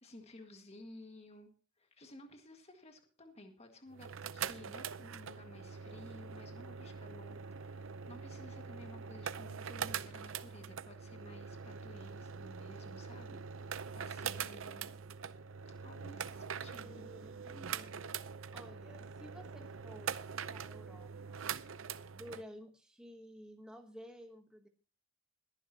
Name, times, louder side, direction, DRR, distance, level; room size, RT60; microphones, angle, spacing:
voice 1, 0.0-13.4 13.9-15.0 15.8-17.1, left 1 dB, 30° left, 5 dB, 1.8 m, -55 dB
sound 1, 3.9-22.4, right 7 dB, 70° right, 0.6 m, -43 dB
voice 2, 16.7-18.2 18.5-21.5 22.1-24.7, equal, 5° right, 3 dB, 1.1 m, -53 dB
21.5 x 10.5 x 2.8 m, 0.36 s
head